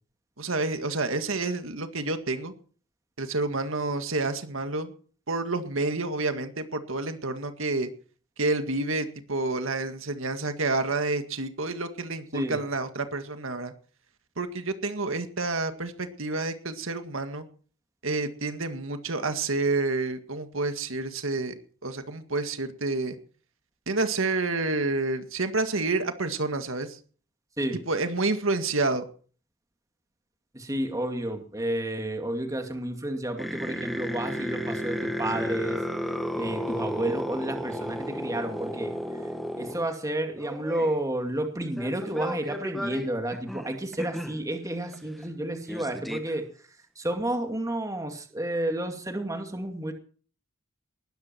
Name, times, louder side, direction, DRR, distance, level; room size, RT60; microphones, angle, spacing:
voice 1, 0.4-2.5 3.2-4.9 5.3-7.9 8.4-13.7 14.4-17.5 18.0-21.5 21.8-23.2 23.9-27.0 27.9-29.1, right 3 dB, 80° right, 8 dB, 1.9 m, -29 dB
voice 2, 30.5-35.8 36.3-38.9 39.6-46.4 47.0-49.9, right 1 dB, 15° right, 5 dB, 2.3 m, -31 dB
sound 1, 33.4-39.9 40.4-40.9 41.6-44.4 44.9-45.0 45.2-45.3 45.7-46.3, equal, ahead, 1.7 m, -33 dB
19.5 x 13.5 x 4.5 m, 0.42 s
head